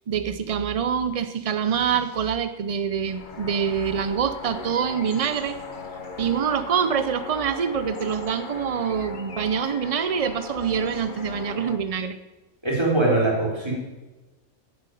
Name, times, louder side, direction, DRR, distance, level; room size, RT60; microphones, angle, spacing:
voice 1, 0.1-5.6 6.2-12.2, right 7 dB, 65° right, 11 dB, 0.3 m, -25 dB
sound 1, 3.1-11.8, left 4 dB, 40° left, 1.1 m, -38 dB
voice 2, 12.6-13.7, right 2 dB, 20° right, -3 dB, 3.6 m, -22 dB
9.4 x 7.5 x 9.1 m, 1.2 s
omnidirectional pair, 1.4 m